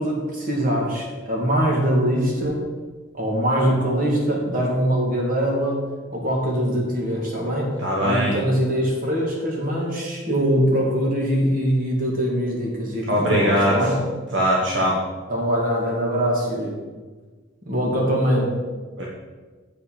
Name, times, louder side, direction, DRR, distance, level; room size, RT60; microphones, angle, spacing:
voice 1, 0.0-2.6 3.2-5.8 6.1-7.7 8.0-14.0 15.3-16.7 17.6-18.5, equal, 40° right, -2 dB, 2.2 m, -22 dB
voice 2, 7.8-8.4 13.1-13.8 14.3-15.0 19.0-19.1, equal, 60° right, -4 dB, 1.3 m, -20 dB
8.0 x 5.7 x 5.8 m, 1.3 s
head